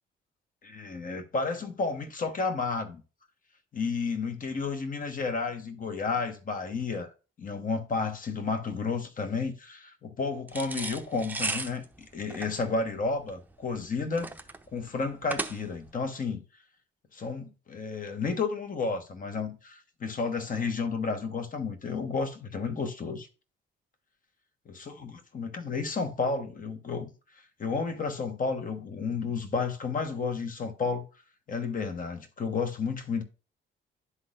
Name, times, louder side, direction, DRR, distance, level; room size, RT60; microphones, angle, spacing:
voice 1, 0.6-3.0 3.7-7.1 7.4-11.8 12.1-14.3 14.7-16.4 17.1-23.3 24.7-27.1 27.6-31.1 31.5-33.2, left 4 dB, 45° left, 1.3 m, -32 dB
sound 1, 10.5-15.9, right 3 dB, 10° right, 0.7 m, -36 dB
11.5 x 3.9 x 2.5 m
cardioid pair, 90°, 20 cm